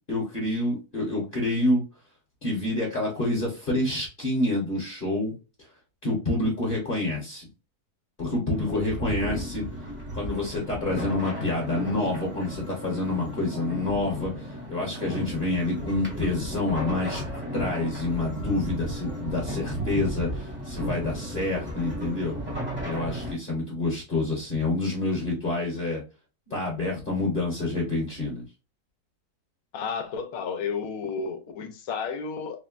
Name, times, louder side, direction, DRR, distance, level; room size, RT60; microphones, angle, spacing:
voice 1, 0.1-1.8 2.4-5.3 6.0-7.5 8.2-9.6 10.1-22.3 22.8-26.0 26.5-28.4, left 2 dB, 40° left, 1.0 m, -28 dB
sound 1, 8.5-23.3, right 1 dB, 10° right, 0.8 m, -34 dB
voice 2, 29.7-32.6, left 5 dB, 70° left, 1.0 m, -32 dB
3.6 x 2.1 x 2.4 m
omnidirectional pair, 1.6 m